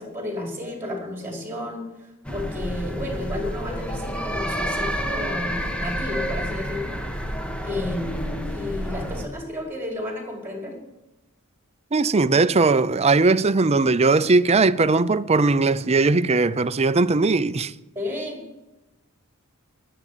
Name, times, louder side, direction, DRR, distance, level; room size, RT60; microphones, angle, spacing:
voice 1, 0.0-7.0 7.6-10.8 18.0-18.4, left 1 dB, 10° right, 5.1 m, -32 dB
sound 1, 2.2-9.3, equal, 5° left, 1.3 m, -29 dB
voice 2, 11.9-17.7, right 3 dB, 30° right, 0.6 m, -19 dB
20.5 x 8.5 x 6.8 m
head